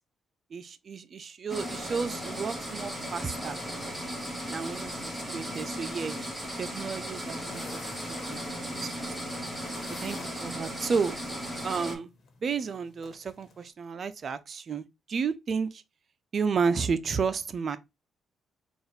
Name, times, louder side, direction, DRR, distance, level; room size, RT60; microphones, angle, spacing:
voice 1, 0.5-3.6 4.5-6.2 6.6-8.9 10.0-11.2 11.6-12.1 12.4-15.8 16.3-17.8, right 5 dB, 45° right, 0.5 m, -32 dB
sound 1, 1.5-12.0, equal, 5° right, 1.4 m, -36 dB
sound 2, 2.8-13.7, left 4 dB, 50° left, 1.3 m, -52 dB
4.4 x 2.4 x 3.2 m
cardioid pair, 90°, 0 cm